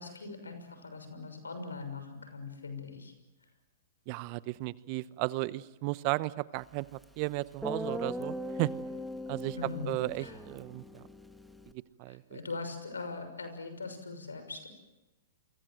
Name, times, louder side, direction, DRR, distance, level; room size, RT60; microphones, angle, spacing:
voice 1, 0.0-3.1 9.5-9.9 10.2-10.4 12.1-14.7, left 3 dB, 85° left, 9 dB, 6.2 m, -41 dB
voice 2, 4.1-8.7 9.3-9.6 9.8-11.0 11.7-12.4, right 21 dB, 45° right, 18 dB, 0.9 m, -35 dB
Guitar, 7.0-7.1 7.6-11.7, equal, ahead, 1.7 m, -40 dB
29.0 x 24.5 x 7.8 m, 1.1 s
hypercardioid pair, 115°, 0 cm